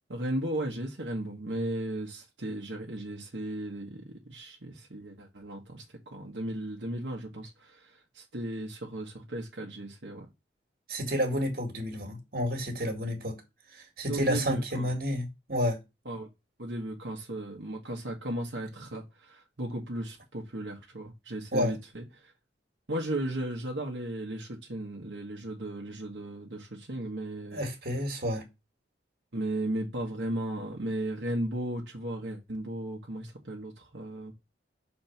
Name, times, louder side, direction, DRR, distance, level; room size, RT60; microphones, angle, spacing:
voice 1, 0.1-10.3 14.1-14.9 16.0-16.3 16.6-22.3 22.9-27.7 29.3-34.3, right 1 dB, 75° right, 1.4 m, -36 dB
voice 2, 10.9-13.4 13.7-15.8 21.5-21.7 27.5-28.4, equal, 55° right, 2.0 m, -30 dB
6.0 x 4.3 x 5.8 m
head